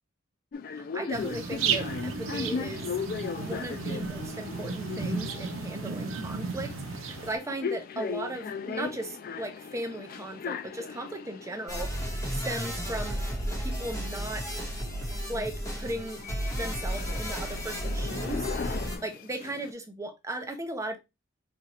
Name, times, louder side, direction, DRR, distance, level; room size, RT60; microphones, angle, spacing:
sound 1, 0.5-19.7, left 6 dB, 45° left, 0.3 m, -38 dB
voice 1, 0.7-2.9 3.4-13.2 13.6-14.6 15.3-16.2 16.5-21.0, right 1 dB, 15° right, 5 dB, 0.5 m, -37 dB
sound 2, 1.1-7.4, right 5 dB, 75° right, 0.6 m, -34 dB
sound 3, 11.7-19.0, equal, 15° left, 1.1 m, -33 dB
4.2 x 2.4 x 2.9 m, 0.23 s
head